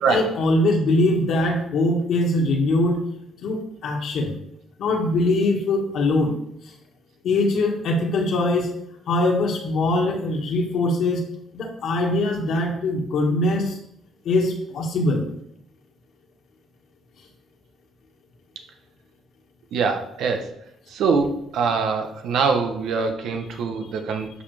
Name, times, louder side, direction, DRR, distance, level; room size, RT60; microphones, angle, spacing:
voice 1, 0.1-3.0 3.4-4.3 4.8-6.3 6.6-6.7 7.2-8.7 9.1-11.2 11.5-13.8 14.2-15.2, left 2 dB, 75° left, 1 dB, 2.0 m, -22 dB
voice 2, 19.7-20.5 20.9-24.3, right 5 dB, 80° right, 5 dB, 1.2 m, -23 dB
11.5 x 5.5 x 3.5 m, 0.74 s
cardioid pair, 90°, 0 cm